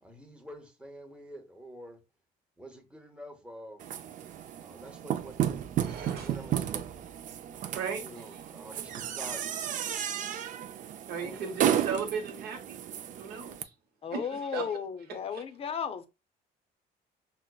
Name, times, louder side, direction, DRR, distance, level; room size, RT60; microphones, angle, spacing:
voice 1, 0.0-2.0 2.6-3.8 4.6-7.1 8.0-9.7 11.1-11.5, equal, 5° right, 0.8 m, -48 dB
sound 1, 3.8-13.6, right 10 dB, 50° right, 0.4 m, -33 dB
voice 2, 5.8-6.4 7.7-8.4 11.1-12.8 13.2-13.5 14.1-14.8 15.1-15.4, right 6 dB, 70° right, 1.0 m, -36 dB
voice 3, 14.0-16.1, left 7 dB, 35° left, 0.5 m, -35 dB
5.7 x 2.0 x 2.2 m
cardioid pair, 110°, 17 cm